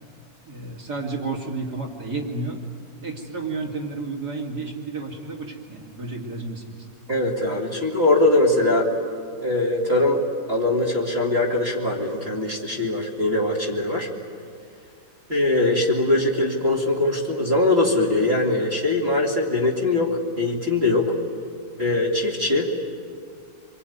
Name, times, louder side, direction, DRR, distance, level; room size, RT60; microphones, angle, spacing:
voice 1, 0.4-2.6 3.0-6.8, right 3 dB, 60° right, -1 dB, 3.5 m, -31 dB
voice 2, 7.1-8.9 9.4-10.2 10.5-14.1 15.3-21.2 21.8-22.8, left 2 dB, 35° right, -1 dB, 2.7 m, -21 dB
27.0 x 23.5 x 9.4 m, 2.3 s
omnidirectional pair, 1.9 m